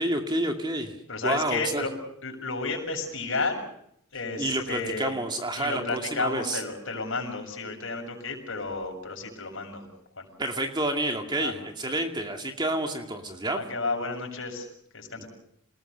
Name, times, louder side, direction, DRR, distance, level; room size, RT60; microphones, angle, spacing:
voice 1, 0.0-1.0 1.2-1.8 4.4-6.6 10.4-13.6 15.2-15.3, right 1 dB, 20° right, 4 dB, 2.4 m, -29 dB
voice 2, 1.1-1.9 2.2-3.6 4.1-5.2 5.6-9.9 10.2-10.3 11.4-11.6 13.5-14.7 14.9-15.3, left 3 dB, 60° left, 2 dB, 7.2 m, -32 dB
28.5 x 20.5 x 6.7 m, 0.71 s
head